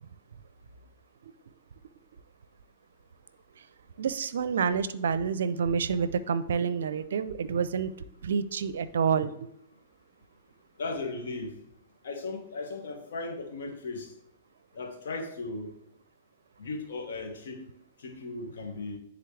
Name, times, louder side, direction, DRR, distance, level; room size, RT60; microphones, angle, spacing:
voice 1, 4.0-7.9 8.2-9.5, right 6 dB, 75° right, 15 dB, 0.5 m, -28 dB
voice 2, 10.8-11.6 12.0-14.1 14.7-15.7 16.6-17.6 18.0-19.0, left 3 dB, 70° left, 3 dB, 1.4 m, -36 dB
9.8 x 3.9 x 3.3 m, 0.75 s
hypercardioid pair, 110°, 0 cm